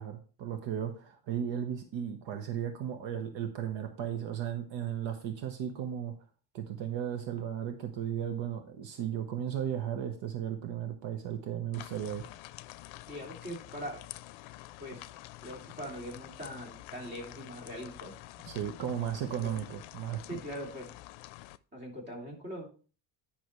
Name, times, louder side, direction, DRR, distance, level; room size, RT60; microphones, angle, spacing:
voice 1, 0.0-6.1 6.5-12.3 18.4-20.4, right 9 dB, 70° right, 6 dB, 1.2 m, -35 dB
sound 1, 11.7-21.6, left 17 dB, 90° left, 0.6 m, -48 dB
voice 2, 13.1-14.0 14.8-15.1 15.4-18.5 19.4-19.5 20.3-20.9 21.7-22.7, equal, 20° right, -1 dB, 2.8 m, -42 dB
10.5 x 6.0 x 3.1 m, 0.38 s
cardioid pair, 140°, 45 cm